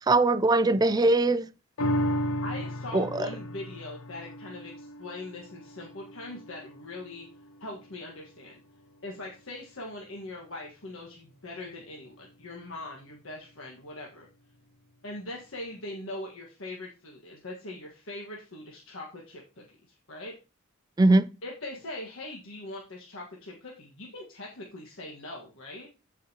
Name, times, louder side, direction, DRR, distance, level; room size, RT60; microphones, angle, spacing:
voice 1, 0.1-1.5 2.9-3.3 21.0-21.3, right 2 dB, 20° right, 0.4 m, -21 dB
sound 1, 1.8-8.4 8.9-9.0, equal, 85° left, 0.8 m, -34 dB
voice 2, 2.4-7.3 7.6-8.5 9.0-14.3 15.0-20.3 21.4-25.9, left 2 dB, 65° left, 1.5 m, -41 dB
15.0 x 5.0 x 2.9 m
head